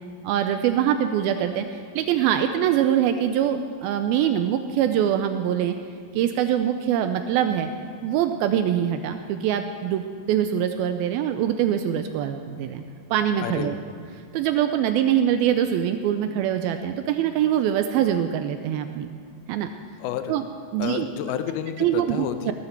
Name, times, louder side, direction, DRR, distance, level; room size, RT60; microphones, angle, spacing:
voice 1, 0.2-5.8 6.1-7.7 8.0-12.8 13.1-13.8 14.3-19.1 19.5-19.7 20.3-20.4 20.7-21.1 21.8-22.5, right 10 dB, 85° right, 8 dB, 2.2 m, -23 dB
voice 2, 13.4-13.8 20.0-20.4 20.8-22.5, left 10 dB, 75° left, 9 dB, 2.5 m, -30 dB
18.0 x 13.0 x 4.5 m, 2.3 s
omnidirectional pair, 4.8 m